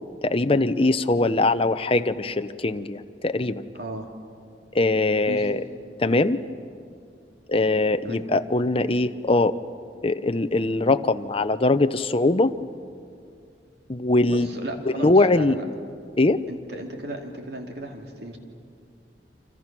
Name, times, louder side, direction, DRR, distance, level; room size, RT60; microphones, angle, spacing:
voice 1, 0.2-3.6 4.7-5.6 6.0-6.4 7.5-9.6 10.0-12.5 13.9-14.5 15.0-15.6 16.2-16.4, left 2 dB, 35° left, 10 dB, 0.8 m, -21 dB
voice 2, 3.7-4.1 5.2-5.5 8.0-8.2 14.2-15.6 16.5-18.4, right 1 dB, 65° right, 2 dB, 2.7 m, -35 dB
30.0 x 26.0 x 6.1 m, 2.3 s
head